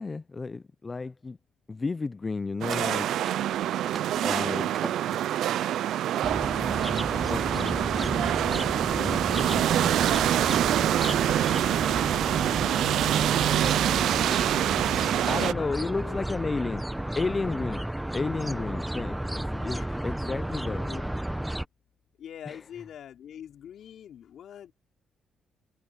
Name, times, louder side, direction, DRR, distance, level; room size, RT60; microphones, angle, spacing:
voice 1, 0.0-1.4 1.7-3.1 4.2-4.7 7.3-10.2 15.2-16.8 17.2-20.8 22.5-22.6, left 4 dB, 30° left, 0.6 m, -33 dB
sound 1, 2.6-15.5, right 12 dB, 75° right, 0.5 m, -25 dB
sound 2, 2.7-7.8, right 3 dB, 25° right, 4.5 m, -42 dB
sound 3, 6.2-21.7, right 1 dB, 5° right, 1.0 m, -33 dB
voice 2, 12.5-14.7 15.5-16.2 19.7-21.1 22.2-24.7, left 9 dB, 70° left, 4.3 m, -46 dB
cardioid pair, 90°, 0 cm